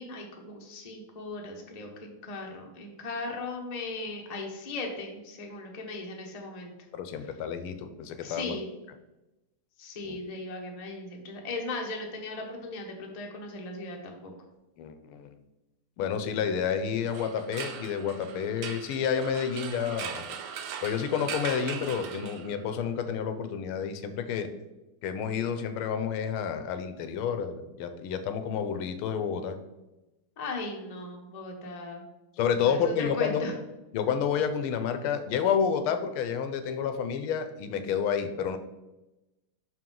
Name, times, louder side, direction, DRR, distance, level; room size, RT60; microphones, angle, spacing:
voice 1, 0.0-6.7 8.2-8.7 9.8-14.3 30.4-32.0 32.4-33.5, left 2 dB, 45° left, 1 dB, 0.5 m, -37 dB
voice 2, 6.9-8.6 10.1-10.2 14.8-15.3 16.0-20.2 20.8-24.5 25.0-29.6 32.4-33.4 33.9-38.6, left 7 dB, 85° left, 9 dB, 1.5 m, -30 dB
sound 1, 17.0-22.7, right 7 dB, 90° right, 1.5 m, -40 dB
5.7 x 4.8 x 3.8 m, 1.0 s
omnidirectional pair, 2.3 m